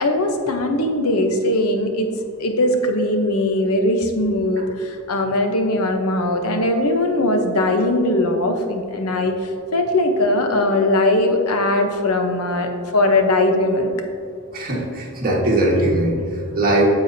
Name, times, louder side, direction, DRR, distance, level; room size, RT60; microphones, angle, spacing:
voice 1, 0.0-2.1 2.4-9.3 9.7-13.9, left 1 dB, 80° left, 5 dB, 0.9 m, -20 dB
voice 2, 14.5-16.9, right 1 dB, 40° right, -3 dB, 1.6 m, -20 dB
9.3 x 7.0 x 2.7 m, 2.5 s
head